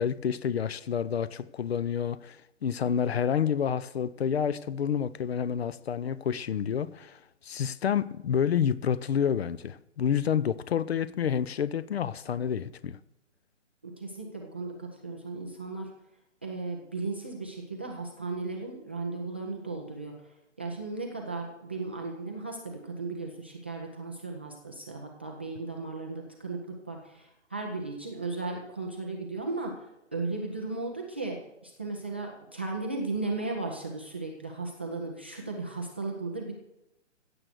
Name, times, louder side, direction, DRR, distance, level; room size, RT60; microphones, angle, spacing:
voice 1, 0.0-13.0, left 8 dB, 55° left, 0.8 m, -29 dB
voice 2, 13.8-15.9 16.4-36.5, right 3 dB, 10° right, 0.4 m, -36 dB
15.5 x 7.9 x 6.6 m
hypercardioid pair, 150°, 37 cm